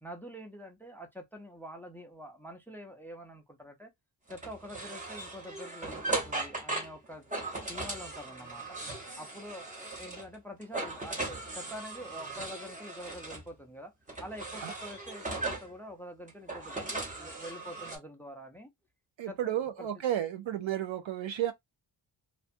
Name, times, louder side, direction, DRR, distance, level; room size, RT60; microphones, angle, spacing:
voice 1, 0.0-3.9 4.3-7.3 7.7-8.8 9.2-13.9 14.2-18.7 19.2-19.9, equal, 5° left, 0.4 m, -46 dB
sound 1, 4.3-10.4 10.6-13.5 14.1-15.7 16.3-18.0, right 2 dB, 15° right, 0.8 m, -38 dB
voice 2, 19.2-21.5, right 11 dB, 80° right, 0.6 m, -32 dB
2.6 x 2.2 x 2.5 m
wide cardioid pair, 135°, 46 cm